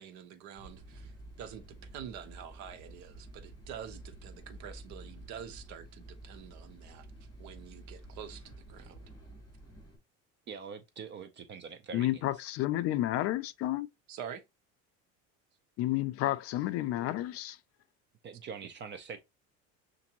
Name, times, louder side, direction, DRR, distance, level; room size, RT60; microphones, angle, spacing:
voice 1, 0.0-1.6 1.9-7.1 7.4-9.1 14.1-14.4, right 8 dB, 65° right, 1.0 m, -46 dB
sound 1, 0.6-10.0, right 1 dB, 15° left, 3.1 m, -50 dB
voice 2, 10.5-12.4 18.2-19.2, right 6 dB, 35° right, 0.6 m, -44 dB
voice 3, 11.9-13.9 15.8-17.6, left 15 dB, 50° left, 0.4 m, -31 dB
6.8 x 2.6 x 2.9 m
cardioid pair, 140°, 31 cm